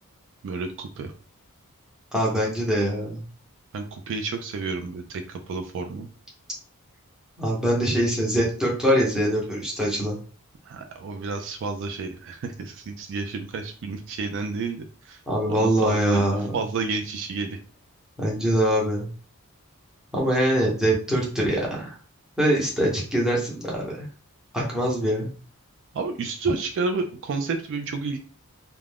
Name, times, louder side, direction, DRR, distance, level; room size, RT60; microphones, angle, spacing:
voice 1, 0.4-1.1 3.7-6.1 10.6-15.2 15.5-17.6 25.9-28.2, right 4 dB, 55° right, 5 dB, 0.3 m, -30 dB
voice 2, 2.1-3.2 7.4-10.2 15.3-16.5 18.2-19.1 20.1-22.0 22.4-24.1 24.5-25.3, equal, 5° right, -4 dB, 0.8 m, -23 dB
2.4 x 2.1 x 3.3 m, 0.39 s
head